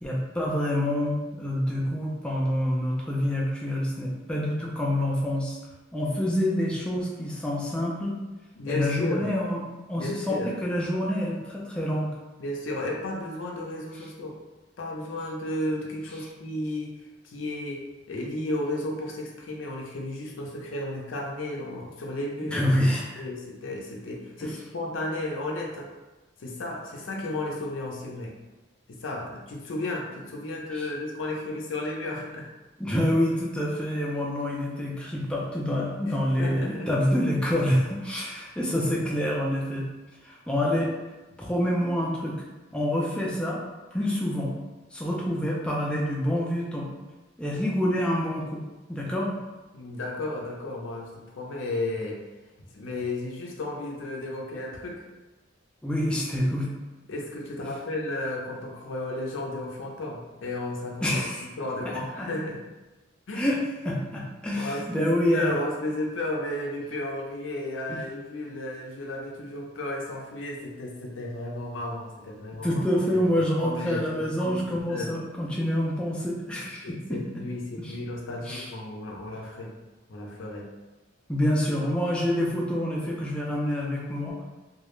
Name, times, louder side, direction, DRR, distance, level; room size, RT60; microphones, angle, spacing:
voice 1, 0.0-5.6 5.9-8.2 8.7-9.6 9.9-12.1 22.4-23.2 30.7-30.9 32.8-39.9 40.2-40.9 41.4-42.4 42.7-43.6 43.9-44.5 44.9-46.9 47.4-48.6 48.9-49.4 55.8-56.7 57.6-57.7 61.0-61.4 61.9-62.3 63.3-63.6 63.8-65.5 67.9-68.0 72.6-77.2 77.8-78.0 78.4-78.7 81.3-84.4, left 1 dB, 5° left, -4 dB, 0.3 m, -27 dB
voice 2, 8.6-9.3 10.0-10.5 12.4-14.4 14.8-22.7 23.2-25.9 26.4-28.3 28.9-32.5 36.1-36.9 49.7-52.2 52.7-55.0 57.1-62.6 63.3-63.5 64.5-72.8 73.6-75.1 76.8-79.7 80.1-80.7, left 1 dB, 90° left, -1 dB, 0.5 m, -33 dB
2.3 x 2.0 x 3.0 m, 1.1 s
head